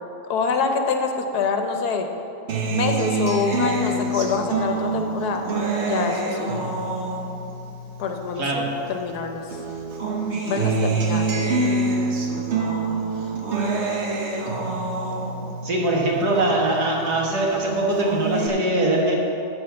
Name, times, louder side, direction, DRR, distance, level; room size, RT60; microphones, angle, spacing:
voice 1, 0.3-2.1 2.7-5.4 5.8-6.7 8.0-8.4 8.9-9.4 10.4-11.5, left 5 dB, 75° left, 5 dB, 1.4 m, -25 dB
Acoustic guitar, 2.5-9.1 9.5-17.1 17.5-18.5, right 3 dB, 50° right, 1.2 m, -26 dB
voice 2, 8.4-8.7 15.6-19.2, right 2 dB, 80° right, -2 dB, 2.1 m, -22 dB
12.0 x 4.5 x 7.8 m, 2.8 s
omnidirectional pair, 1.7 m